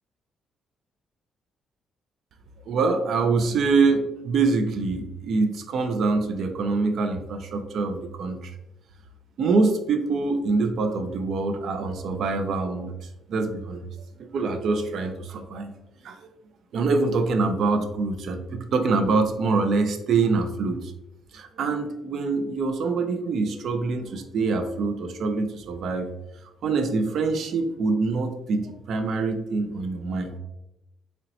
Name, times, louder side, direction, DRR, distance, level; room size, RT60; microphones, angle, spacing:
voice 1, 2.7-8.5 9.4-12.9 13.3-13.9 14.2-15.7 16.0-16.2 16.7-20.9 21.3-26.1 26.6-30.4, right 4 dB, 65° right, 6 dB, 0.4 m, -25 dB
3.8 x 2.1 x 2.7 m, 0.90 s
cardioid pair, 90°, 0 cm